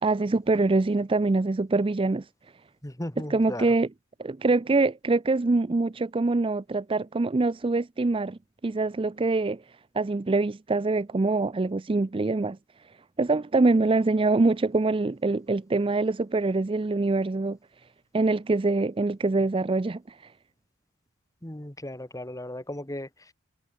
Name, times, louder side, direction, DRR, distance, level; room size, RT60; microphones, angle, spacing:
voice 1, 0.0-2.3 3.2-3.9 4.2-9.6 9.9-12.6 13.2-17.6 18.1-20.2, right 3 dB, 25° right, 0.4 m, -24 dB
voice 2, 2.8-3.7 21.4-23.1, left 1 dB, 15° left, 1.8 m, -36 dB
head